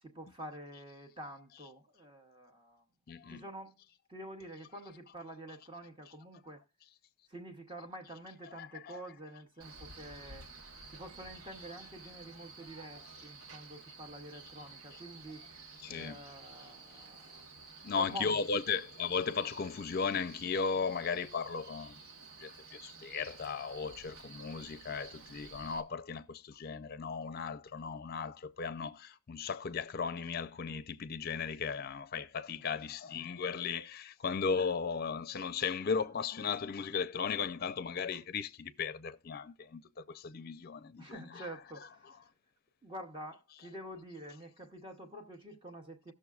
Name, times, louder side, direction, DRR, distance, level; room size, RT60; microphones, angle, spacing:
voice 1, 0.0-2.8 3.3-3.7 4.1-6.6 7.3-10.5 10.9-15.4 15.9-17.5 17.9-18.4 32.7-32.8 41.0-42.1 42.8-46.1, right 1 dB, 25° right, 0.8 m, -48 dB
voice 2, 3.1-3.4 8.6-9.0 15.8-16.2 17.8-22.0 22.4-41.5, left 5 dB, 45° left, 0.4 m, -36 dB
Male speech man speaking, 9.6-25.8, right 4 dB, 85° right, 1.2 m, -52 dB
18.0 x 6.4 x 2.4 m
head